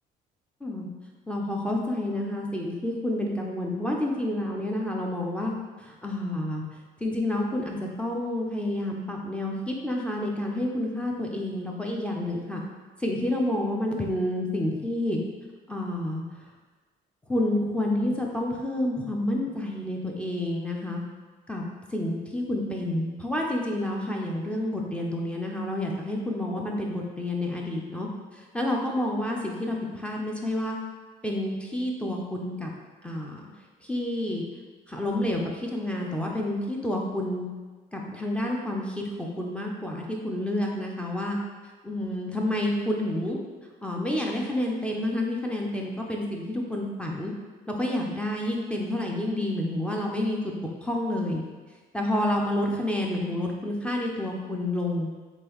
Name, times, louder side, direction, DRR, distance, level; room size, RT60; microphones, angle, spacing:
voice 1, 1.3-5.5 5.8-6.6 7.0-12.6 13.0-15.2 15.7-16.2 17.3-21.0 21.5-21.6 21.9-28.1 28.3-30.8 31.2-32.7 33.0-33.4 33.8-34.4 34.9-37.5 37.9-41.4 41.8-43.4 43.8-47.3 47.7-50.5 50.8-51.4 51.9-55.1, left 1 dB, 5° left, -1 dB, 0.5 m, -29 dB
3.7 x 3.0 x 3.0 m, 1.3 s
cardioid pair, 110°, 17 cm